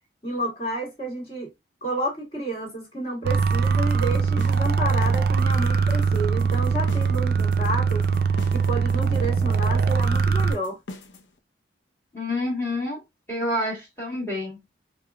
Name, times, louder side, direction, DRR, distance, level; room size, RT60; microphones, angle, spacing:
voice 1, 0.2-1.5 1.8-8.0 8.5-10.8, right 1 dB, 30° left, 1.8 m, -30 dB
sound 1, 3.2-10.5, right 5 dB, 55° right, 0.4 m, -22 dB
sound 2, 3.4-11.3, left 2 dB, 75° left, 0.7 m, -41 dB
voice 2, 12.1-13.0 13.3-14.6, left 1 dB, 15° left, 1.5 m, -28 dB
4.8 x 2.3 x 2.3 m
head